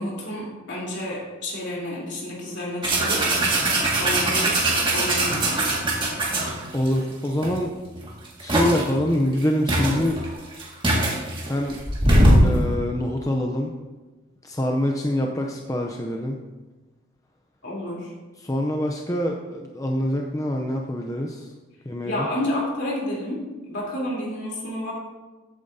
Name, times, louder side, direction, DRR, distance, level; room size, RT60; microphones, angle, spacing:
voice 1, 0.0-3.2 4.0-5.5 17.6-18.1 22.0-23.4 23.6-24.9, left 1 dB, 55° left, -4 dB, 3.4 m, -30 dB
sound 1, 2.8-6.9 7.4-7.6 8.0-8.9 9.4-9.5 9.7-12.6, right 1 dB, 25° right, 1.9 m, -21 dB
voice 2, 6.7-7.7 8.4-10.2 11.4-11.8 12.4-13.7 14.4-16.4 18.4-21.5 21.9-22.3, left 1 dB, 15° left, 1 dB, 0.5 m, -25 dB
14.5 x 8.7 x 2.7 m, 1.2 s
head